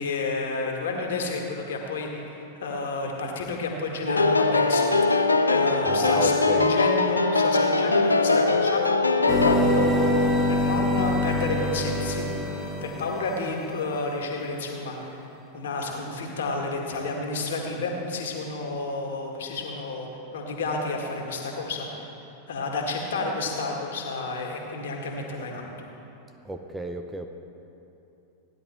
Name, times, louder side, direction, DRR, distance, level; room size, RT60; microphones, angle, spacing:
voice 1, 0.0-4.9 5.5-8.8 9.2-12.3 12.8-15.2 15.5-22.0 22.5-25.9, left 3 dB, 60° left, 1 dB, 1.8 m, -30 dB
sound 1, 4.1-9.6, left 3 dB, 80° left, 0.6 m, -21 dB
voice 2, 5.9-6.8 26.4-27.3, equal, 10° right, 5 dB, 0.7 m, -32 dB
sound 2, 9.3-13.5, left 1 dB, 5° left, 2.1 m, -25 dB
15.5 x 10.5 x 4.3 m, 3.0 s
figure-of-eight pair, 90°, 0 cm